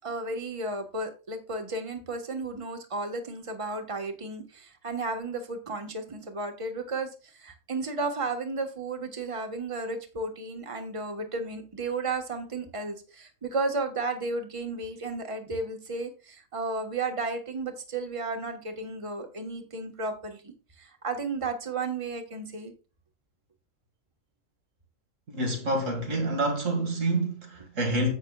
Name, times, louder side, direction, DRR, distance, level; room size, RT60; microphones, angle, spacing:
voice 1, 0.0-22.7, right 3 dB, 25° right, 1.3 m, -33 dB
voice 2, 25.3-28.1, right 1 dB, 85° right, 2.4 m, -27 dB
11.0 x 8.3 x 2.3 m
omnidirectional pair, 1.3 m